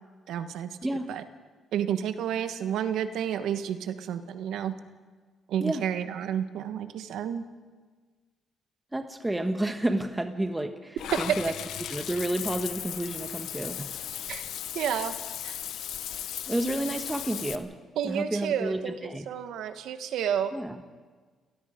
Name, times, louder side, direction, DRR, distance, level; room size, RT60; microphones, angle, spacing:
voice 1, 0.3-0.8 1.1-1.2 1.7-4.7 5.5-7.4 11.1-11.2 14.3-14.5 14.7-15.2 15.4-15.6 18.0-20.5, right 9 dB, 80° right, 10 dB, 1.3 m, -30 dB
voice 2, 8.9-11.5 11.8-14.1 16.5-17.7 18.0-19.2 20.5-20.8, right 1 dB, 10° right, 6 dB, 1.4 m, -30 dB
Water / Bathtub (filling or washing), 11.0-17.5, left 11 dB, 80° left, 0.9 m, -36 dB
29.0 x 17.5 x 5.1 m, 1.5 s
cardioid pair, 90°, 0 cm